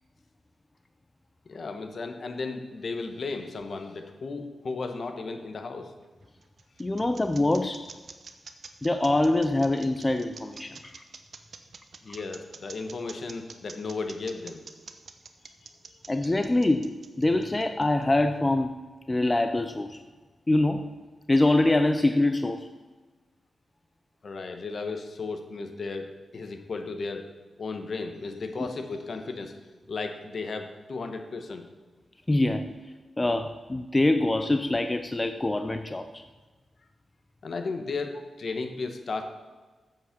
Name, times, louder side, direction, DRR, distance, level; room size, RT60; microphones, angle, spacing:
voice 1, 1.5-5.9 12.0-14.6 15.6-15.7 24.2-27.3 27.6-29.5 29.9-31.7 37.4-39.2, left 4 dB, 60° left, 6 dB, 1.2 m, -35 dB
sound 1, 6.0-18.0, right 5 dB, 60° right, 0.9 m, -46 dB
voice 2, 6.8-7.9 8.8-11.0 16.1-18.8 19.1-20.0 20.5-20.9 21.3-22.7 32.3-32.8 33.2-36.2, left 2 dB, 20° left, 8 dB, 0.5 m, -24 dB
8.4 x 7.5 x 5.9 m, 1.3 s
cardioid pair, 85°, 0 cm